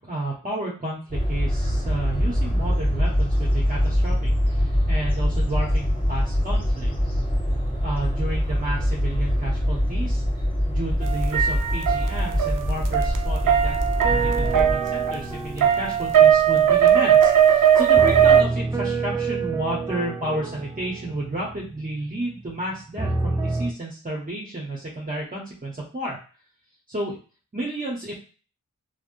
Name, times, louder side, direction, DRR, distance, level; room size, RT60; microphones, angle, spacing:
voice 1, 0.1-7.2 7.8-10.2 10.7-13.8 14.1-26.2 26.9-27.1 27.5-28.1, right 1 dB, 25° right, -4 dB, 0.9 m, -32 dB
sound 1, 1.1-14.8, equal, 15° left, 1.3 m, -23 dB
sound 2, 11.0-18.4, right 9 dB, 70° right, 0.5 m, -19 dB
sound 3, 14.0-17.4 17.9-22.6 23.0-23.7, right 3 dB, 10° right, 0.4 m, -29 dB
3.3 x 2.1 x 2.6 m, 0.37 s
cardioid pair, 45°, 33 cm